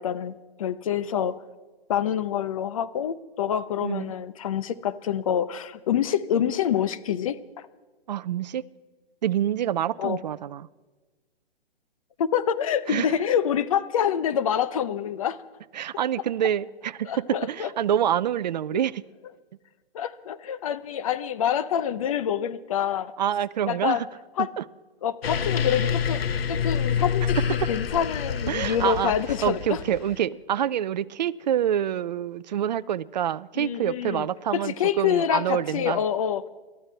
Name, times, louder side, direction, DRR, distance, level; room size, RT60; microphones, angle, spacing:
voice 1, 0.0-1.4 1.9-7.7 10.0-10.2 12.2-15.4 17.0-17.7 19.9-23.1 23.7-24.0 24.4-24.5 25.0-29.8 33.6-34.3 34.5-36.4, left 9 dB, 35° left, 0.6 m, -26 dB
voice 2, 3.8-4.1 8.1-8.6 9.2-10.7 12.9-13.1 15.7-19.0 23.2-24.1 24.4-24.6 27.6-27.7 28.5-29.1 29.4-36.0, right 10 dB, 45° right, 0.5 m, -26 dB
sound 1, 25.2-30.2, left 7 dB, 70° left, 1.0 m, -27 dB
28.0 x 13.0 x 3.3 m
hypercardioid pair, 150°, 31 cm